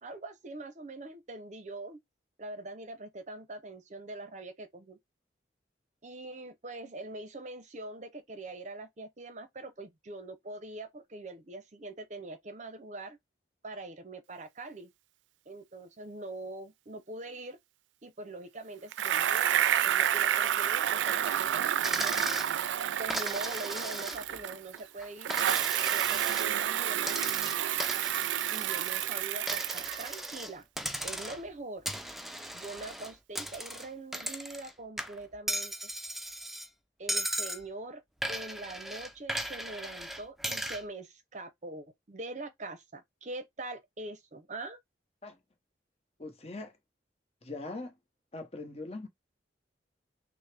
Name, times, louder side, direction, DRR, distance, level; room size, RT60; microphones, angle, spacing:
voice 1, 0.0-2.0 2.4-5.0 6.0-13.2 13.6-14.9 15.5-17.6 18.0-19.6 19.8-22.2 23.0-25.4 25.9-27.2 28.5-30.7 31.0-31.9 32.5-35.9 37.0-38.0 38.3-44.8, right 2 dB, 40° right, 0.6 m, -43 dB
Bicycle, 18.9-24.8 25.2-30.4, right 10 dB, 90° right, 0.3 m, -29 dB
Coin (dropping), 21.8-22.5 23.1-24.4 24.8-26.5 27.0-29.1 29.5-30.5 30.8-31.5 31.9-34.7 35.0-36.7 37.1-37.6 38.2-40.8, right 1 dB, ahead, 0.4 m, -37 dB
voice 2, 46.2-46.8 47.4-48.0 48.3-49.1, left 2 dB, 35° left, 0.9 m, -41 dB
6.2 x 2.1 x 3.3 m
head